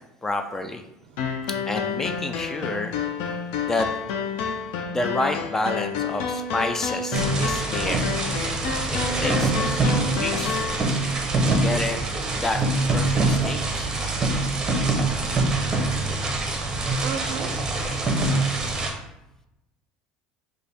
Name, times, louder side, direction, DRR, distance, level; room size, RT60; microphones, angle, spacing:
voice 1, 0.2-0.8 1.7-2.9 3.7-3.9 4.9-8.1 8.6-10.7 11.4-12.0 12.3-12.6 12.9-13.9, left 2 dB, 15° left, 7 dB, 0.3 m, -29 dB
voice 2, 1.1-1.4 4.4-4.8 15.0-15.4 17.0-17.6, right 8 dB, 65° right, 7 dB, 0.4 m, -38 dB
sound 1, 1.2-10.8, left 6 dB, 75° left, 0.5 m, -29 dB
sound 2, 7.1-18.9, right 2 dB, 20° right, 0.7 m, -24 dB
Keyboard (musical), 9.0-11.8, left 1 dB, 45° left, 1.5 m, -41 dB
3.4 x 2.5 x 4.1 m, 0.93 s
cardioid pair, 135°, 3 cm